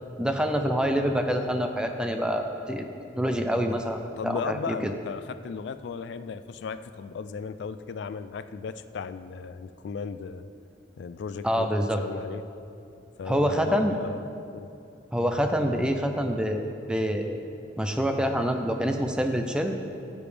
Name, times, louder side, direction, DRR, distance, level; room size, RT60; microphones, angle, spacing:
voice 1, 0.2-2.9 3.2-4.9 11.4-12.0 13.3-13.9 15.1-17.4 17.8-19.7, equal, 5° right, 5 dB, 0.5 m, -26 dB
voice 2, 4.2-10.5 11.0-11.7 12.0-12.4 13.2-14.2 14.5-14.7, left 5 dB, 65° left, 12 dB, 0.3 m, -36 dB
15.0 x 7.0 x 3.3 m, 2.7 s
head